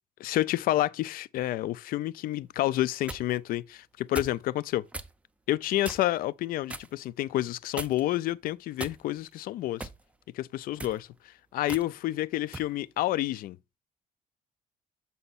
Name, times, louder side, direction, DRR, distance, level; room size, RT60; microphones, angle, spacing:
voice 1, 0.2-4.8 5.5-9.9 10.3-13.6, left 15 dB, 70° left, 0.4 m, -29 dB
sound 1, 2.7-3.3 4.1-4.4 4.9-5.1 5.8-6.2 6.7-6.9 7.8-8.2 8.8-9.3 9.8-10.0 10.7-11.0 11.7-11.9 12.5-12.7, right 2 dB, 10° right, 0.5 m, -39 dB
7.0 x 5.5 x 4.1 m
cardioid pair, 155°, 15 cm